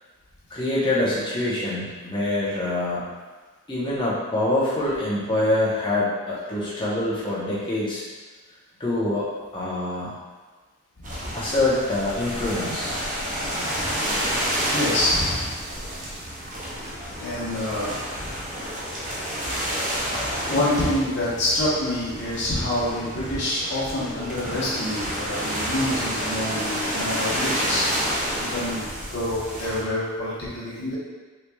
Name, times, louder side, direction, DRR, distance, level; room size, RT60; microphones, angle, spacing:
voice 1, 0.5-3.0 3.7-8.0 8.8-9.3 9.5-10.2 11.3-13.0, left 1 dB, 20° left, -7 dB, 0.8 m, -25 dB
voice 2, 11.0-11.3 13.7-13.8 14.7-15.6 17.2-18.4 20.5-27.9 28.4-30.9, left 1 dB, 50° left, -8 dB, 1.0 m, -27 dB
sound 1, 11.0-29.8, equal, 35° right, 0.6 m, -29 dB
4.0 x 3.1 x 2.3 m, 1.4 s
head